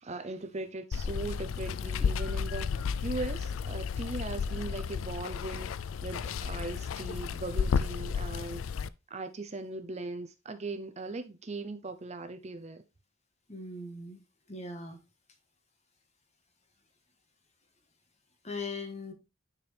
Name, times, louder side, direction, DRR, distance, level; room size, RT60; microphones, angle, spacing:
voice 1, 0.0-5.8 6.0-8.6 9.1-12.8, right 2 dB, 30° right, 0.6 m, -39 dB
Water, 0.9-8.9, left 6 dB, 75° left, 0.4 m, -33 dB
voice 2, 13.5-14.2 14.5-15.0 18.4-19.1, left 3 dB, 30° left, 1.5 m, -39 dB
9.7 x 4.4 x 3.3 m
head